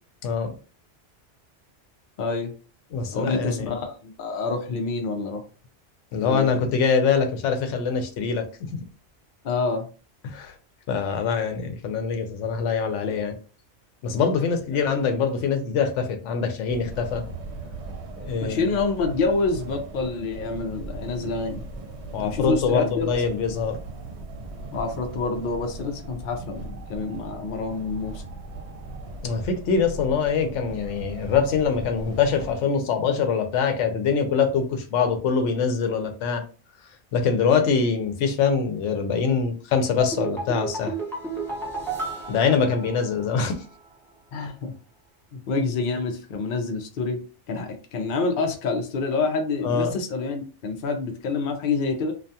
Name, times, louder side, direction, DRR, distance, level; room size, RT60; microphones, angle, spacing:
voice 1, 0.2-0.5 2.9-3.7 6.1-8.4 10.2-10.6 10.9-13.4 14.0-17.2 18.2-18.7 22.1-23.8 29.2-36.4 37.1-40.9 42.3-43.6 49.6-50.0, left 5 dB, 80° left, 6 dB, 0.9 m, -24 dB
voice 2, 2.2-2.5 3.1-5.4 6.2-6.6 9.4-9.9 18.4-21.6 22.2-23.1 24.7-28.2 44.3-44.7 45.3-47.2 47.5-52.1, left 4 dB, 55° left, 3 dB, 0.6 m, -27 dB
sound 1, 16.7-32.5, right 2 dB, 70° right, 0.9 m, -38 dB
sound 2, 40.0-43.4 43.7-43.8, right 3 dB, ahead, 0.6 m, -32 dB
2.4 x 2.3 x 2.6 m, 0.35 s
omnidirectional pair, 1.2 m